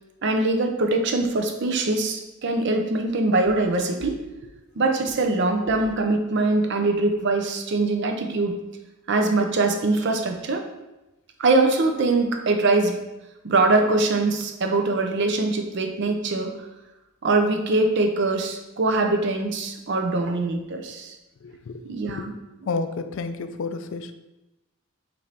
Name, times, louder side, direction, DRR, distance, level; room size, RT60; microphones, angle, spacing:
voice 1, 0.2-4.2 4.8-8.6 9.1-10.7 11.4-13.0 13.4-16.5 17.2-21.2 21.8-22.3, right 2 dB, 55° right, 4 dB, 0.5 m, -22 dB
voice 2, 21.4-21.9 22.2-22.3 22.7-24.2, left 4 dB, 60° left, 9 dB, 0.3 m, -30 dB
5.4 x 2.6 x 3.3 m, 0.99 s
head